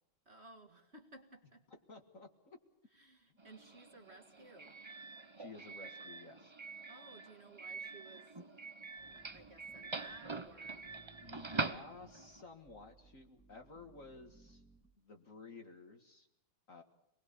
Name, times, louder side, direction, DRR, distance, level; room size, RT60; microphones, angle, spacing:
voice 1, 0.3-1.8 2.9-4.8 6.9-8.5 9.0-10.8, right 2 dB, 30° right, 3 dB, 2.0 m, -58 dB
voice 2, 1.9-2.6 3.3-3.4 5.4-6.5 11.2-14.6 15.0-16.3 16.7-16.8, left 3 dB, 40° left, 5 dB, 1.9 m, -54 dB
Doorbell, 3.4-12.4, right 3 dB, 50° right, 0.3 m, -45 dB
sound 1, 9.0-15.0, right 4 dB, 5° right, 2.6 m, -65 dB
26.0 x 20.0 x 6.9 m, 0.81 s
omnidirectional pair, 2.3 m